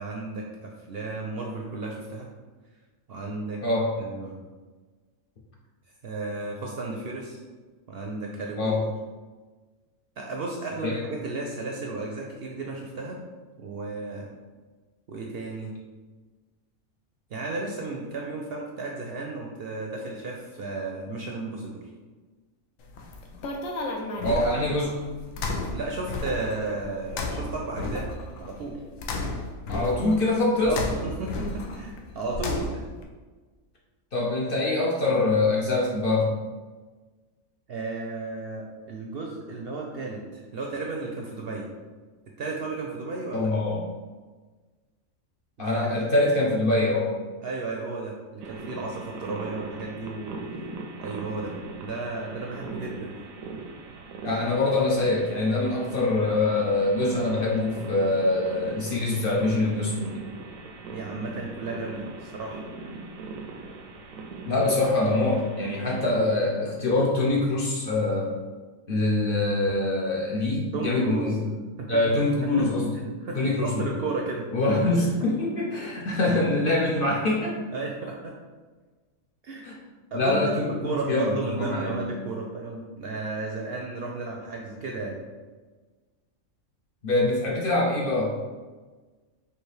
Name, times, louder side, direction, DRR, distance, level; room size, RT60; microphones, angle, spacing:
voice 1, 0.0-2.3 3.1-3.6 4.0-4.4 6.0-7.4 7.9-8.7 10.2-13.2 13.6-14.3 15.1-15.7 17.3-21.8 24.3-24.4 25.7-28.1 28.4-28.8 30.6-32.8 37.7-41.7 42.4-43.5 45.6-45.7 47.4-50.4 51.0-51.5 51.8-53.2 60.9-62.6 70.7-71.4 71.8-72.0 72.4-72.7 72.9-74.5 77.7-78.3 79.4-79.7 80.1-85.2, right 3 dB, 65° right, -1 dB, 0.6 m, -33 dB
sound 1, 22.8-33.0, left 2 dB, 80° left, 1.0 m, -33 dB
voice 2, 24.2-24.9 29.7-30.8 34.1-36.3 43.3-43.9 45.6-47.1 54.2-60.3 64.4-68.3 68.9-71.4 71.9-72.9 73.3-73.9 74.5-77.6 79.6-79.7 80.1-82.1 87.0-88.4, left 2 dB, 55° left, -3 dB, 0.7 m, -24 dB
sound 2, 48.4-66.1, right 3 dB, 85° right, 1.0 m, -40 dB
4.7 x 2.7 x 3.2 m, 1.3 s
omnidirectional pair, 1.4 m